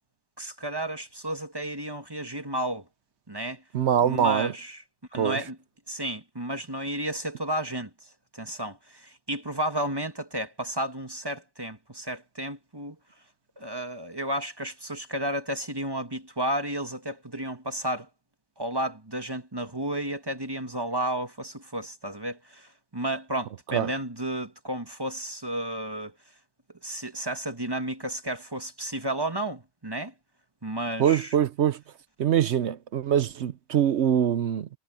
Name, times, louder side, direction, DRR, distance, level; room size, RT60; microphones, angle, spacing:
voice 1, 0.4-2.8 3.3-3.6 4.0-4.8 5.1-5.6 5.9-7.9 8.3-13.0 13.6-18.1 18.6-26.1 26.8-30.1 30.6-31.3, right 1 dB, 20° right, 1.7 m, -32 dB
voice 2, 3.7-4.5 5.2-5.4 23.7-23.9 31.0-31.8 32.2-34.7, right 9 dB, 65° right, 0.9 m, -23 dB
omnidirectional pair, 1.3 m